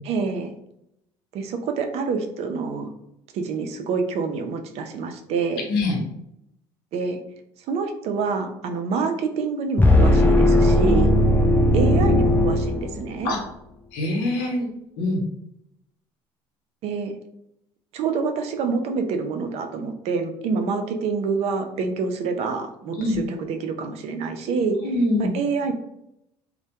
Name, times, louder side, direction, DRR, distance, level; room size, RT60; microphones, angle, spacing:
voice 1, 0.0-0.5 1.3-2.9 3.3-5.6 6.9-7.2 7.7-11.1 11.7-13.3 16.8-17.1 17.9-23.0 23.3-24.8 25.2-25.9, right 5 dB, 60° right, 6 dB, 0.4 m, -26 dB
voice 2, 5.7-6.0 10.8-11.0 13.2-13.4 13.9-14.7 15.0-15.2 23.0-23.2 24.8-25.3, left 2 dB, 85° left, 0 dB, 0.8 m, -24 dB
sound 1, 9.8-13.2, left 1 dB, 15° left, 0.6 m, -17 dB
2.1 x 2.1 x 2.8 m, 0.79 s
supercardioid pair, 90°, 12 cm